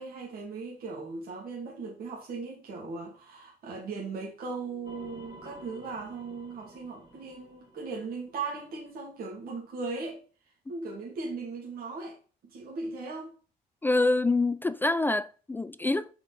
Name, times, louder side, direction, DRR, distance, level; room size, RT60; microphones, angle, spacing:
voice 1, 0.0-10.2 10.7-12.2 12.4-13.3, right 4 dB, 60° right, 2.5 m, -38 dB
sound 1, 4.8-9.3, equal, 25° right, 1.6 m, -52 dB
voice 2, 13.8-16.1, left 2 dB, 10° left, 0.3 m, -26 dB
6.6 x 5.6 x 4.2 m
cardioid pair, 110°, 17 cm